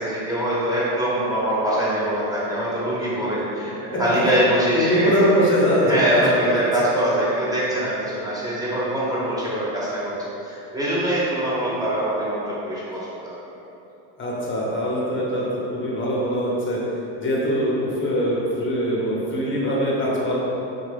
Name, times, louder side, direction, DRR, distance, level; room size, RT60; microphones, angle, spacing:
voice 1, 0.0-5.2 5.8-7.9 8.2-10.1 10.4-13.3, right 1 dB, 10° right, -8 dB, 0.8 m, -23 dB
voice 2, 4.7-6.6 14.2-16.8 17.2-20.4, equal, 25° left, -5 dB, 0.8 m, -22 dB
2.8 x 2.3 x 3.3 m, 2.9 s
supercardioid pair, 100°, 45 cm